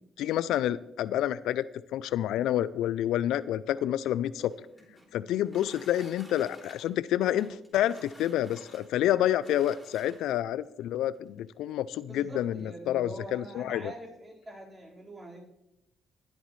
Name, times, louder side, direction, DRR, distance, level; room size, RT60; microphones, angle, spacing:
voice 1, 0.2-4.5 5.1-13.8, left 12 dB, 85° left, 18 dB, 0.3 m, -28 dB
sound 1, 4.4-10.5 11.4-11.5 11.9-12.0 12.3-12.7, equal, ahead, 3.0 m, -53 dB
voice 2, 12.1-15.4, right 1 dB, 20° right, -3 dB, 4.3 m, -44 dB
20.5 x 8.1 x 3.2 m, 0.88 s
cardioid pair, 90°, 0 cm